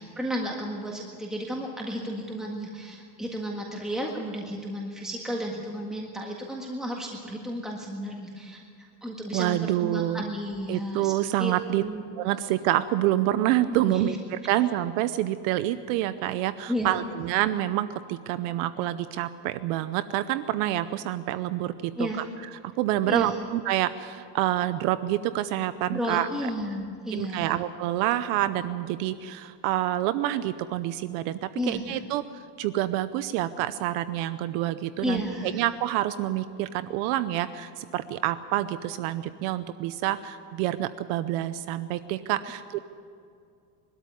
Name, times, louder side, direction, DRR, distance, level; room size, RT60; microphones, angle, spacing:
voice 1, 0.0-11.1 11.4-12.0 13.7-14.2 16.7-16.9 22.0-22.2 23.1-23.3 25.9-27.5 31.5-32.0 35.0-35.6, equal, ahead, -1 dB, 1.7 m, -33 dB
voice 2, 9.3-10.2 10.7-11.9 12.2-22.2 22.8-26.3 27.1-35.2 35.5-42.8, right 14 dB, 60° right, 13 dB, 0.8 m, -27 dB
22.0 x 13.0 x 9.6 m, 2.4 s
supercardioid pair, 145°, 44 cm